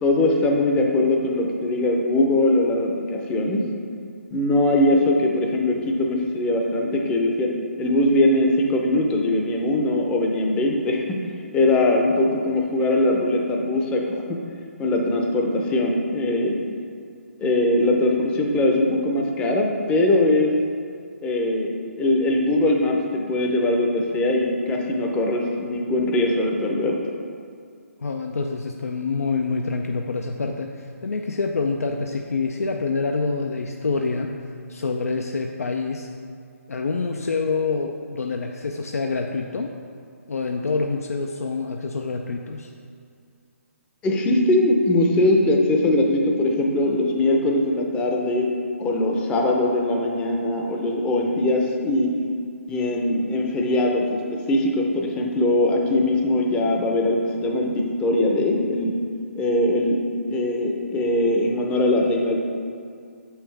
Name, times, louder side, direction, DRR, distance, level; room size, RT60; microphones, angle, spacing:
voice 1, 0.0-3.6 4.3-7.5 7.8-11.0 11.5-14.4 14.8-16.6 17.4-20.5 21.2-27.0 44.0-48.5 48.8-52.1 52.7-58.9 59.4-60.0 60.3-62.4, left 1 dB, 15° left, 1 dB, 0.6 m, -21 dB
voice 2, 28.0-34.3 34.7-36.1 36.7-39.7 40.3-42.7, left 4 dB, 75° left, 3 dB, 0.5 m, -26 dB
7.1 x 5.6 x 3.3 m, 2.3 s
figure-of-eight pair, 140°, 8 cm